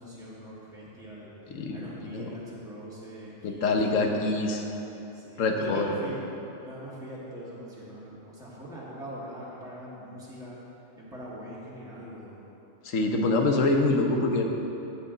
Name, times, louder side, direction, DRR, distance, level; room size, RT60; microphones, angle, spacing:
voice 1, 0.0-4.7 5.1-6.2 6.6-10.6 11.0-12.4, equal, 5° right, -8 dB, 1.8 m, -42 dB
voice 2, 1.5-2.3 3.4-4.6 5.4-5.9 12.8-14.4, left 2 dB, 85° left, 3 dB, 1.3 m, -25 dB
14.5 x 6.7 x 3.9 m, 2.9 s
omnidirectional pair, 1.3 m